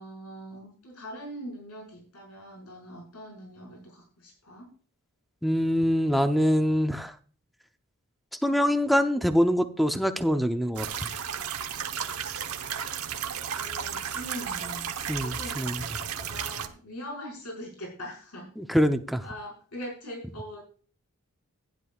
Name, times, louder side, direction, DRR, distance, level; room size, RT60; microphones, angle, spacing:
voice 1, 0.0-4.7 13.4-14.9 15.2-15.8 16.3-18.5 19.2-20.6, equal, 85° left, -1 dB, 5.3 m, -42 dB
voice 2, 5.4-7.1 8.4-10.9 15.1-15.8 18.6-19.2, equal, ahead, 7 dB, 0.6 m, -24 dB
sound 1, 10.8-16.7, right 8 dB, 70° right, 1.0 m, -34 dB
15.5 x 10.5 x 2.4 m, 0.42 s
head